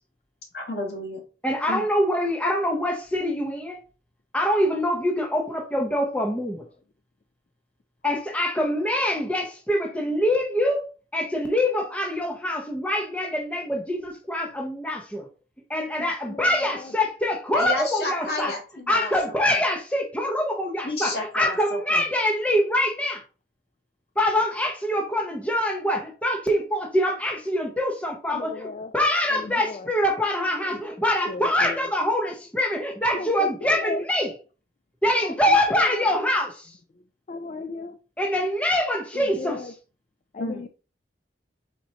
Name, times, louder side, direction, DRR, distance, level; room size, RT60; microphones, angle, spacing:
voice 1, 0.5-1.2 1.7-1.9 17.5-19.1 19.5-19.6 20.8-21.6 21.9-22.0 40.4-40.6, left 1 dB, 65° left, 1.5 m, -30 dB
voice 2, 1.4-3.8 4.3-6.6 8.0-10.8 11.1-15.3 15.7-18.5 18.9-23.2 24.2-34.3 35.0-36.7 38.2-39.7, left 1 dB, 10° left, 0.6 m, -24 dB
voice 3, 16.0-16.9 28.3-28.9 29.3-29.9 30.7-30.8 31.3-31.9 33.1-34.0 35.2-36.0 37.3-38.0 39.1-39.7 40.3-40.7, left 4 dB, 40° left, 0.3 m, -36 dB
4.3 x 4.1 x 2.8 m
head